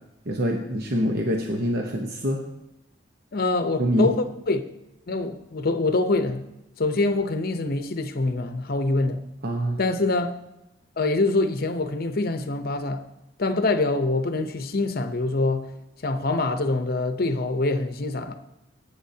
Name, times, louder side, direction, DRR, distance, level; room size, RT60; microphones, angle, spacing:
voice 1, 0.3-2.4 3.8-4.1 9.4-9.8, equal, 55° right, 1.0 m, -25 dB
voice 2, 3.3-4.6 5.1-6.5 6.8-9.2 9.8-10.3 11.0-13.0 13.4-15.7 16.0-18.3, left 2 dB, 55° left, 0.8 m, -25 dB
18.0 x 8.7 x 2.8 m
head